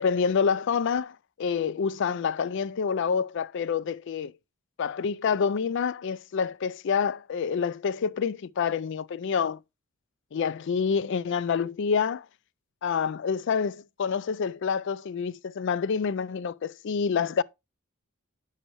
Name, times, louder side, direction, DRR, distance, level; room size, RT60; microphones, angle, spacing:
voice 1, 0.0-4.3 4.8-9.6 10.3-12.3 12.8-17.4, left 6 dB, 55° left, 0.4 m, -27 dB
9.0 x 6.5 x 3.0 m
head